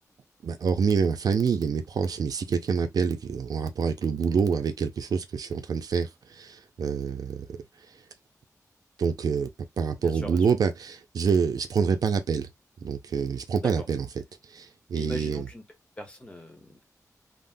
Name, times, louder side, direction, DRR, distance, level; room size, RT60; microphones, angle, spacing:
voice 1, 0.4-7.5 9.0-9.5 9.8-12.5 12.8-14.1 14.5-15.5, right 6 dB, 85° right, 0.5 m, -26 dB
voice 2, 10.0-10.5 13.6-13.9 14.9-15.6 16.0-16.9, left 1 dB, 15° left, 1.0 m, -40 dB
3.6 x 2.1 x 2.6 m
wide cardioid pair, 145°, 6 cm